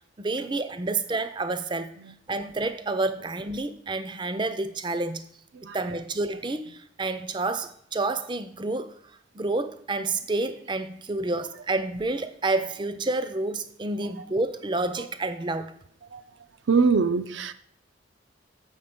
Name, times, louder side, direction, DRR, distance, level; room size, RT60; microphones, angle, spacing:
voice 1, 0.2-1.9 2.3-5.2 5.7-8.9 9.3-15.7, right 2 dB, 25° right, 0.5 m, -29 dB
voice 2, 5.5-6.0 15.0-15.1 16.1-16.2 16.7-17.5, right 5 dB, 70° right, 0.5 m, -24 dB
7.1 x 6.2 x 5.1 m
head